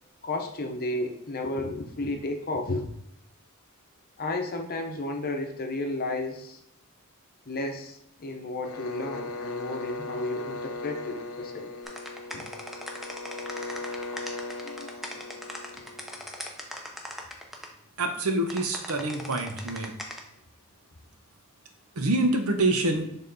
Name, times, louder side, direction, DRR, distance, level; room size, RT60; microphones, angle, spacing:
voice 1, 0.2-2.9 4.2-6.6 7.5-11.7 12.3-12.4 14.6-15.2, left 2 dB, 45° left, 3 dB, 0.8 m, -33 dB
sound 1, 8.6-16.4, left 3 dB, 75° left, 0.7 m, -38 dB
sound 2, 11.8-17.7 18.5-20.2, equal, ahead, 0.7 m, -39 dB
voice 2, 18.0-19.9 22.0-23.1, right 2 dB, 75° right, 5 dB, 0.9 m, -26 dB
6.6 x 3.5 x 4.0 m, 0.76 s
head